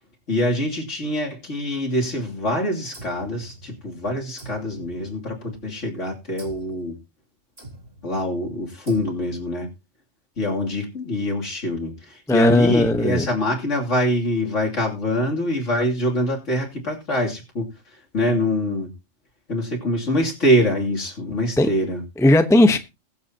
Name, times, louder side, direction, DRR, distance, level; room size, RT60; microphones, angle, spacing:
voice 1, 0.3-7.0 8.0-9.7 10.4-17.7 18.1-18.9 19.5-22.0, left 1 dB, 65° left, 3.2 m, -24 dB
sound 1, 2.9-4.0 4.4-5.7 6.4-6.8 7.6-8.1 8.9-9.5, right 3 dB, 50° right, 3.1 m, -44 dB
voice 2, 12.3-13.3 21.6-21.7 22.2-22.8, left 1 dB, 5° left, 0.9 m, -16 dB
21.0 x 7.9 x 2.8 m
omnidirectional pair, 1.3 m